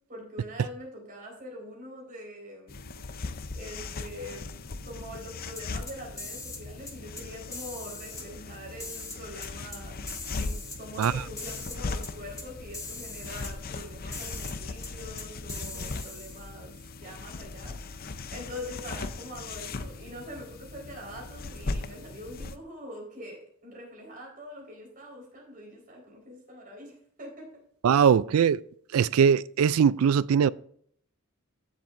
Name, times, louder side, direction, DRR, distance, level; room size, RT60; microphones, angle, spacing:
voice 1, 0.1-2.8 3.5-4.5 4.8-10.1 10.4-17.8 18.1-27.5, equal, 40° right, 4.3 m, -44 dB
sound 1, 2.7-22.6, left 3 dB, 45° left, 0.6 m, -39 dB
sound 2, 5.6-6.6 6.9-7.2 7.5-8.2 8.8-9.8 10.1-11.1 11.4-11.8 12.0-12.1 12.4-12.5 12.7-13.5 14.1-14.5 14.8-14.9 15.2-16.5, left 3 dB, 15° left, 1.6 m, -40 dB
voice 2, 27.8-28.6 28.9-30.5, right 7 dB, 75° right, 0.3 m, -21 dB
15.0 x 7.4 x 2.6 m
head